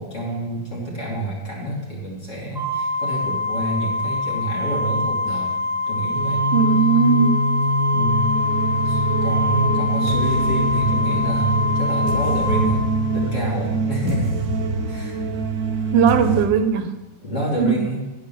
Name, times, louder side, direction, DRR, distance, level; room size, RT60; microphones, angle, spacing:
voice 1, 0.0-6.5 7.9-8.3 8.8-12.9 13.1-14.3 14.9-15.2 17.2-18.0, right 1 dB, 40° left, -4 dB, 2.7 m, -28 dB
Organ, 2.6-13.3, left 2 dB, 20° right, 0.7 m, -24 dB
sound 1, 6.1-16.5, right 1 dB, 60° right, 1.1 m, -23 dB
voice 2, 6.5-7.5 15.9-16.9 17.6-17.9, right 7 dB, 85° right, 9 dB, 1.4 m, -18 dB
9.1 x 4.8 x 6.9 m, 1.1 s
omnidirectional pair, 2.0 m